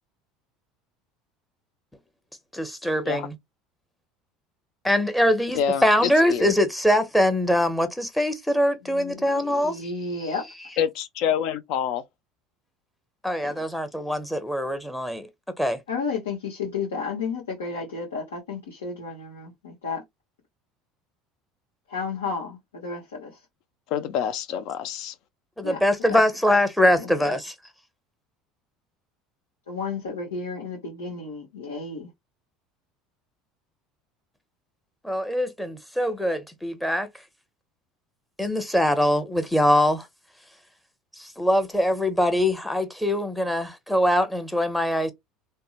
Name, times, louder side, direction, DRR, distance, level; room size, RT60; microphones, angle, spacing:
voice 1, 2.5-3.3 4.8-9.9 10.2-10.3 13.2-15.3 15.6-15.8 25.6-27.5 35.0-37.1 38.4-40.1 41.2-45.1, left 1 dB, 5° left, 0.7 m, -23 dB
voice 2, 5.5-6.5 10.8-12.0 13.4-13.6 23.9-25.1, left 8 dB, 65° left, 0.4 m, -27 dB
voice 3, 8.8-10.4 15.9-20.0 21.9-23.4 25.6-25.8 26.1-26.2 26.8-27.4 29.7-32.1, left 4 dB, 90° left, 0.9 m, -32 dB
2.7 x 2.1 x 2.4 m
hypercardioid pair, 80°, 0 cm